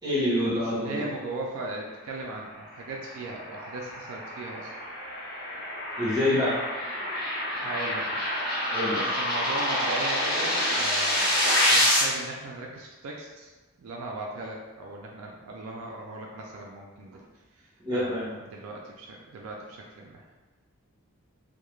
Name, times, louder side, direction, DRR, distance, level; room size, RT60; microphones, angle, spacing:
voice 1, 0.0-1.1 6.0-6.5 8.7-9.0 17.8-18.3, left 1 dB, 20° right, -9 dB, 0.8 m, -26 dB
voice 2, 0.6-4.7 7.6-8.2 9.0-11.3 11.6-13.5 13.8-17.3 17.6-20.3, right 2 dB, 70° right, -1 dB, 0.3 m, -38 dB
sound 1, 3.1-12.0, left 1 dB, 40° left, 0.9 m, -27 dB
2.3 x 2.1 x 3.0 m, 1.2 s
head